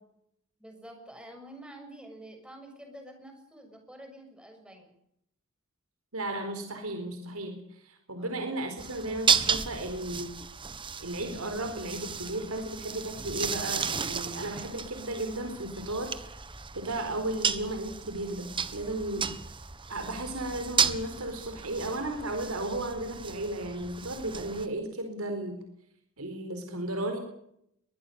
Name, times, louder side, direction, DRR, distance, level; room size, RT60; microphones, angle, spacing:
voice 1, 0.6-4.9 8.2-8.3, right 1 dB, 5° right, 4 dB, 7.0 m, -48 dB
voice 2, 6.1-10.3 11.0-16.3 16.7-19.3 19.9-25.6 26.2-27.2, right 1 dB, 85° right, 5 dB, 4.4 m, -34 dB
sound 1, 8.8-24.7, right 6 dB, 25° right, 1.5 m, -33 dB
23.0 x 20.5 x 7.0 m, 0.75 s
head